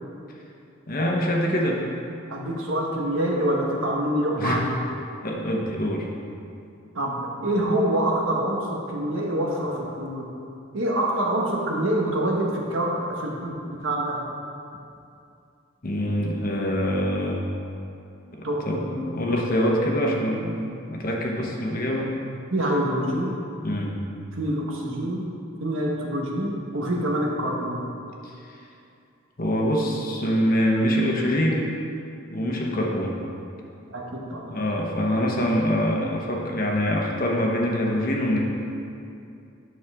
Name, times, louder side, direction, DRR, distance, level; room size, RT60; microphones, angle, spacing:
voice 1, 0.9-1.8 4.4-4.6 5.2-6.1 15.8-17.4 18.4-22.1 23.6-23.9 28.2-28.3 29.4-31.7 32.3-33.2 34.5-38.4, equal, 45° left, -1 dB, 1.0 m, -24 dB
voice 2, 2.3-4.7 6.9-10.2 10.7-13.5 13.8-14.2 18.4-19.1 21.4-21.5 22.5-23.4 24.3-25.2 25.6-27.8 33.9-34.5, right 1 dB, 70° right, -1 dB, 1.2 m, -26 dB
9.6 x 6.3 x 3.6 m, 2.6 s
head